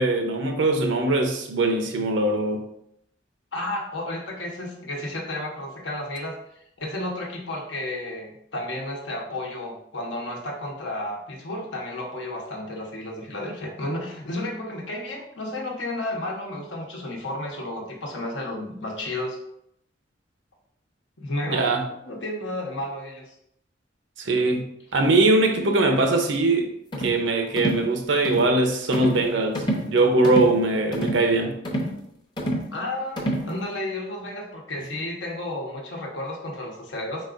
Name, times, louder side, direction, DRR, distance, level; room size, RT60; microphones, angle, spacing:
voice 1, 0.0-2.7 21.5-21.8 24.2-26.7 27.0-31.6, right 2 dB, 85° right, 0.7 m, -21 dB
voice 2, 3.5-6.4 6.8-19.4 21.2-23.4 32.7-37.3, left 1 dB, 75° left, 1.0 m, -32 dB
sound 1, 26.9-27.2 27.6-27.9 28.2-28.5 28.9-29.3 29.5-29.9 30.2-30.6 30.9-31.3 31.6-32.0 32.4-32.7 33.2-33.5, right 1 dB, 25° left, 0.7 m, -27 dB
4.7 x 4.1 x 2.5 m
head